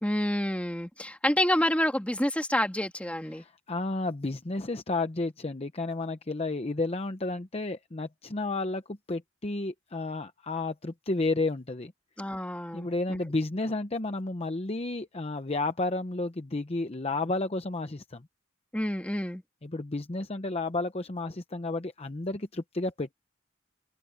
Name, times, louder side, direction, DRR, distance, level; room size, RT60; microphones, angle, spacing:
voice 1, 0.0-3.4 12.2-12.9 18.7-19.4, left 1 dB, 5° left, 2.3 m, -28 dB
voice 2, 3.3-11.9 12.7-18.3 19.6-23.1, left 2 dB, 30° left, 0.8 m, -32 dB
open air
head